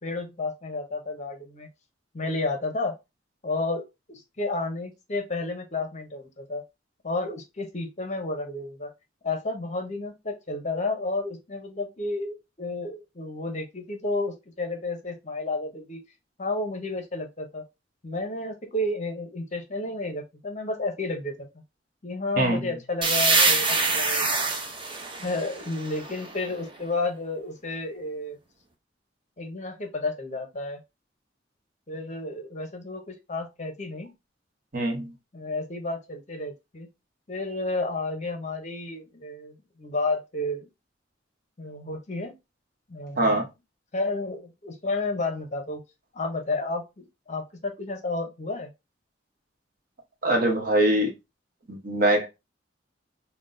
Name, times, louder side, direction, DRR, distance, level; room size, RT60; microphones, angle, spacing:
voice 1, 0.0-1.7 2.1-2.9 3.4-3.8 4.1-6.6 7.0-8.9 9.2-16.0 16.4-17.6 18.0-21.5 22.0-24.4 25.2-28.4 29.4-30.8 31.9-34.1 35.3-36.9 37.3-40.7 41.6-42.3 42.9-43.4 43.9-45.8 46.1-48.7, left 2 dB, 40° left, 0.7 m, -31 dB
voice 2, 22.4-22.7 34.7-35.1 43.2-43.5 50.2-51.1 51.7-52.3, right 1 dB, 50° right, 0.9 m, -23 dB
sound 1, 23.0-26.6, right 3 dB, 25° right, 0.7 m, -25 dB
5.8 x 2.2 x 2.5 m
head